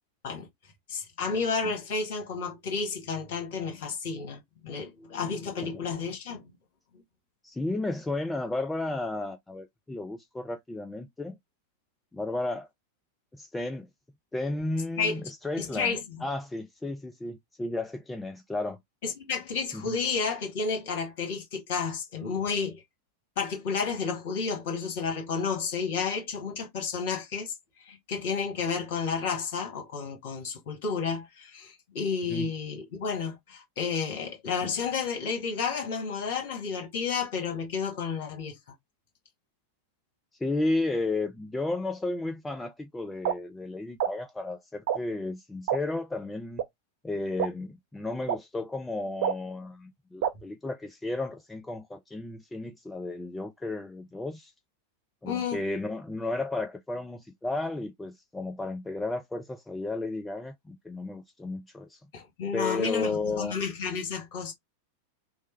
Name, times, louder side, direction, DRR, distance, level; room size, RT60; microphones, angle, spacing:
voice 1, 0.9-6.5 15.0-15.2 15.6-16.2 19.0-22.8 23.4-27.5 27.8-38.6 55.2-55.6 62.1-64.5, left 5 dB, 50° left, 1.5 m, -31 dB
voice 2, 7.4-11.4 12.1-12.7 13.3-13.9 14.3-15.9 16.2-18.8 19.7-20.0 32.3-32.5 40.4-46.6 47.0-54.5 55.2-62.0 62.5-63.6, left 2 dB, 10° left, 0.4 m, -33 dB
sound 1, 43.2-43.3 44.0-44.1 44.9-45.0 45.7-45.8 46.6-46.7 47.4-47.5 48.3-48.4 49.2-49.3 50.2-50.3, right 9 dB, 50° right, 0.4 m, -26 dB
3.1 x 2.1 x 3.1 m
figure-of-eight pair, 90°, 0 cm